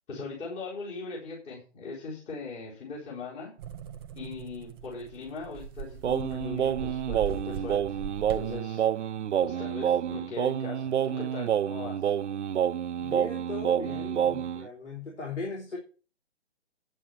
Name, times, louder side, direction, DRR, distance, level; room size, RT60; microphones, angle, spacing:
voice 1, 0.1-3.5 4.1-8.0 8.3-8.8 9.4-12.1, left 4 dB, 20° left, -5 dB, 4.1 m, -40 dB
sound 1, 3.6-8.6, right 7 dB, 20° right, 0.7 m, -40 dB
Singing, 6.0-14.6, right 9 dB, 75° right, 0.5 m, -28 dB
voice 2, 13.0-15.8, left 3 dB, 80° left, 0 dB, 3.4 m, -38 dB
9.2 x 7.7 x 5.5 m, 0.36 s
figure-of-eight pair, 140°, 35 cm